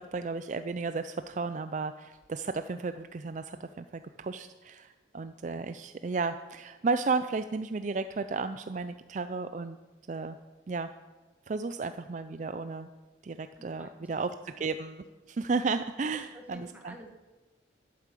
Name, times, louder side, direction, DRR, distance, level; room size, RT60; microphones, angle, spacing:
voice 1, 0.1-9.8 10.1-10.4 10.7-10.9 11.5-12.9 13.2-16.9, right 4 dB, 40° right, 10 dB, 0.4 m, -33 dB
voice 2, 13.6-14.4 16.3-17.1, equal, 10° right, 3 dB, 1.4 m, -50 dB
12.0 x 8.5 x 7.4 m, 1.2 s
head